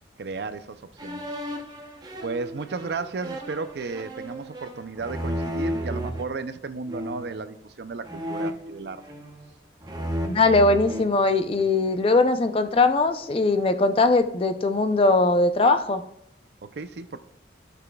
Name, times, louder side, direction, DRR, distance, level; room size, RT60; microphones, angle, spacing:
voice 1, 0.2-1.2 2.2-9.0 16.6-17.2, right 4 dB, 60° right, 12 dB, 0.4 m, -34 dB
sound 1, 1.0-6.2 6.9-7.4 8.0-9.5 9.8-11.8, equal, 20° right, 0.7 m, -33 dB
voice 2, 10.3-16.0, left 3 dB, 30° left, 9 dB, 0.4 m, -20 dB
14.5 x 6.0 x 2.3 m, 0.73 s
head